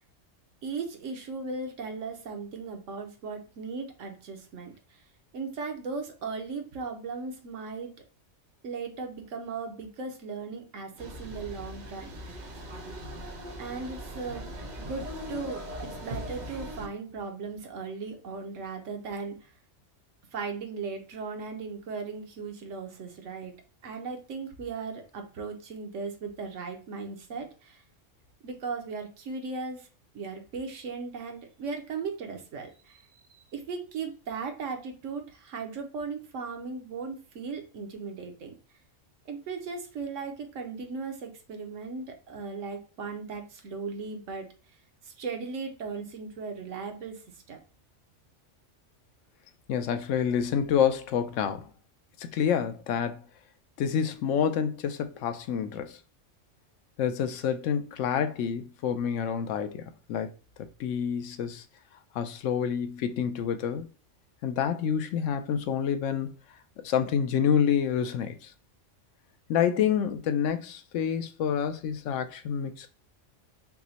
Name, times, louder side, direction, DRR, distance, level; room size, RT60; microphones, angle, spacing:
voice 1, 0.6-5.0 5.3-7.9 8.6-12.4 13.6-19.5 20.3-23.5 23.8-27.8 28.4-29.9 30.1-33.1 33.3-38.5 39.3-44.5 45.0-47.6, right 4 dB, 90° right, 1.2 m, -37 dB
sound 1, 11.0-16.9, equal, 45° right, 0.8 m, -40 dB
voice 2, 49.7-51.7 52.2-53.2 53.8-56.0 57.0-60.3 60.8-61.6 62.1-63.9 64.4-66.3 66.8-68.5 69.5-72.9, left 8 dB, 85° left, 0.9 m, -28 dB
5.8 x 2.1 x 2.7 m
omnidirectional pair, 1.3 m